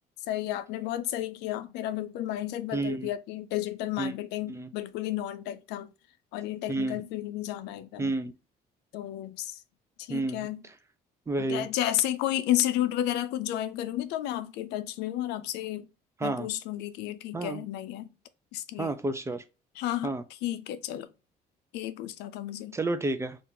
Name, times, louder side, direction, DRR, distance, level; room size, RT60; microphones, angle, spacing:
voice 1, 0.2-5.9 6.3-8.2 8.9-9.6 10.0-10.6 11.4-15.9 16.2-18.1 18.5-18.9 19.7-21.1 21.7-22.8, left 13 dB, 85° left, 0.4 m, -32 dB
voice 2, 2.7-3.1 4.0-4.1 4.5-4.7 6.7-7.0 8.0-8.3 10.1-10.5 11.3-11.7 16.2-16.5 17.3-17.6 18.8-19.4 20.0-20.2 22.7-23.4, right 2 dB, 15° right, 0.4 m, -30 dB
2.8 x 2.5 x 3.6 m
cardioid pair, 110°, 17 cm